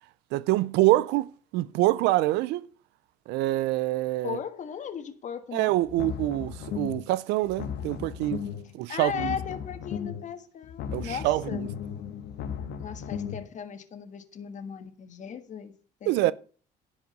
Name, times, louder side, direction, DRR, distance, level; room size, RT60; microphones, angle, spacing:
voice 1, 0.3-2.7 3.3-4.4 5.5-8.4 8.7-9.4 10.9-11.7 16.1-16.3, right 17 dB, 90° right, 0.5 m, -25 dB
voice 2, 4.2-5.7 8.9-11.6 12.8-15.7 16.0-16.1, left 7 dB, 45° left, 1.5 m, -37 dB
sound 1, 5.8-7.1 7.4-8.7 9.0-10.3 10.6-13.5, left 8 dB, 80° left, 1.1 m, -36 dB
10.5 x 5.0 x 7.7 m
cardioid pair, 110°, 17 cm